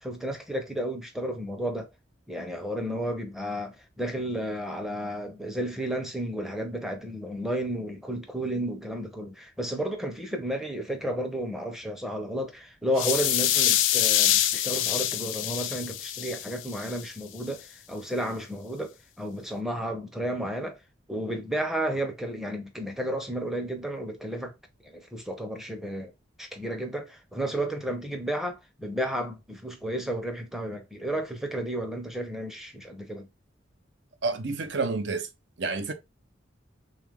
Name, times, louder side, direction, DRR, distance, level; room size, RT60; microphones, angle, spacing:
voice 1, 0.0-1.9 2.3-20.8 21.1-24.6 24.8-26.1 26.4-33.3, right 1 dB, ahead, 0.6 m, -32 dB
sound 1, 13.0-17.0, left 12 dB, 85° left, 0.4 m, -25 dB
voice 2, 34.2-35.3 35.6-35.9, right 3 dB, 65° right, 0.6 m, -29 dB
3.4 x 2.4 x 3.4 m
head